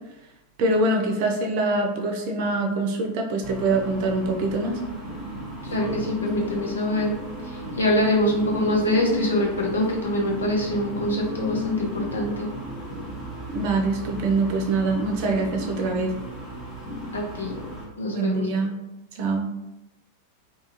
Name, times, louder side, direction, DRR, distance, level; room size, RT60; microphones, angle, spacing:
voice 1, 0.6-4.8 13.5-16.1 18.1-18.7 19.1-19.5, right 2 dB, 45° right, 2 dB, 0.5 m, -24 dB
sound 1, 3.4-17.9, left 1 dB, 35° left, 0.8 m, -34 dB
voice 2, 5.7-7.1 7.4-12.5 17.1-17.5 18.0-18.5, left 1 dB, 70° left, -1 dB, 0.6 m, -24 dB
2.7 x 2.3 x 2.9 m, 0.95 s
figure-of-eight pair, 90°, 0 cm